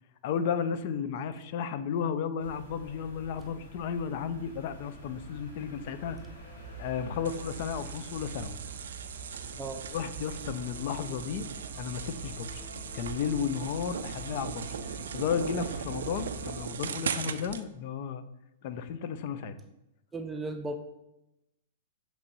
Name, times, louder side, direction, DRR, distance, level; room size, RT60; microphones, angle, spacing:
voice 1, 0.2-6.2 6.8-8.6 9.9-11.5 11.8-12.6 12.9-18.2 18.6-19.6, left 7 dB, 55° left, 11 dB, 0.4 m, -33 dB
sound 1, 2.4-16.6, right 2 dB, 80° left, 1.5 m, -45 dB
sound 2, 7.2-17.6, right 7 dB, 75° right, 0.3 m, -39 dB
voice 2, 20.1-20.8, right 2 dB, 15° right, 5 dB, 0.4 m, -35 dB
6.8 x 3.0 x 2.6 m, 0.91 s
hypercardioid pair, 110°, 0 cm